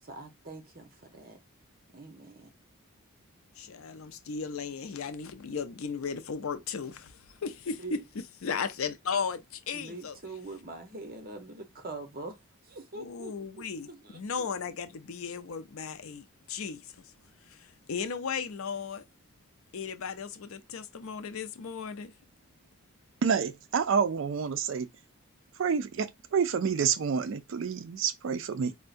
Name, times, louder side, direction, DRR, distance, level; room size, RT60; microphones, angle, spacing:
voice 1, 0.0-1.4 1.9-2.5 7.8-8.0 9.7-12.4 12.6-13.3 13.9-14.2, right 2 dB, 40° right, 0.8 m, -43 dB
voice 2, 3.6-10.1 12.9-17.1 17.4-19.0 19.7-22.1, left 5 dB, 70° left, 0.5 m, -36 dB
voice 3, 23.2-24.9 25.6-28.7, right 6 dB, 60° right, 0.4 m, -28 dB
4.4 x 2.1 x 2.4 m
head